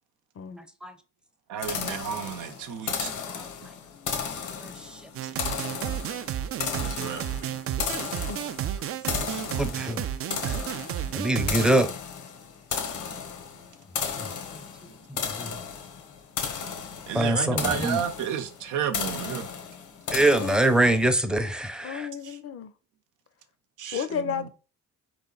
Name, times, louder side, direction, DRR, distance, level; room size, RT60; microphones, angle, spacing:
voice 1, 0.5-0.9 4.6-4.7 9.6-10.0 10.5-10.6 11.1-11.9 14.2-14.3 15.4-15.5 17.1-18.0 20.1-22.1, right 1 dB, 5° right, 0.6 m, -24 dB
voice 2, 1.5-3.1 5.2-5.3 6.8-7.6 17.1-19.5 22.2-22.4 23.8-24.5, right 8 dB, 85° right, 0.7 m, -32 dB
sound 1, 1.6-21.0, left 7 dB, 75° left, 1.0 m, -35 dB
sound 2, 5.1-11.7, right 10 dB, 50° right, 0.4 m, -32 dB
voice 3, 21.8-22.7 23.9-24.5, left 7 dB, 50° left, 0.6 m, -32 dB
4.0 x 3.3 x 3.8 m
cardioid pair, 90°, 30 cm